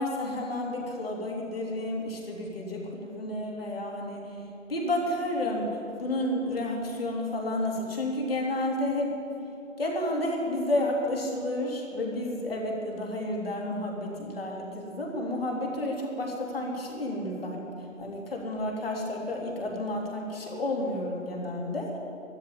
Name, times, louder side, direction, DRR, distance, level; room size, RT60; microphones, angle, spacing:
voice 1, 0.0-4.4 4.7-9.2 9.8-17.7 18.0-22.0, left 1 dB, 45° left, -1 dB, 3.2 m, -31 dB
13.0 x 11.0 x 9.3 m, 2.7 s
hypercardioid pair, 175°, 40 cm